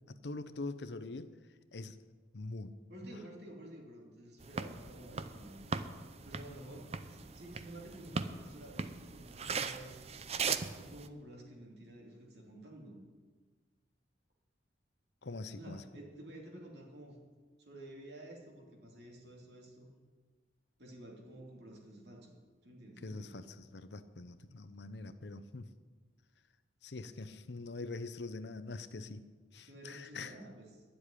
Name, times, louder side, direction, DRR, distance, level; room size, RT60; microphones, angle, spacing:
voice 1, 0.1-1.3 1.7-2.0 2.3-2.7 15.2-15.8 23.0-23.4 23.7-25.7 26.8-29.2 29.5-30.3, left 3 dB, 65° left, 12 dB, 0.7 m, -43 dB
voice 2, 2.9-5.6 6.2-10.0 10.8-13.0 15.6-17.2 17.6-19.9 20.8-22.3 22.6-23.4 29.6-30.8, right 1 dB, 60° right, -1 dB, 3.0 m, -51 dB
sound 1, 4.4-11.1, right 5 dB, 35° right, 0.6 m, -40 dB
11.0 x 7.8 x 9.9 m, 1.4 s
head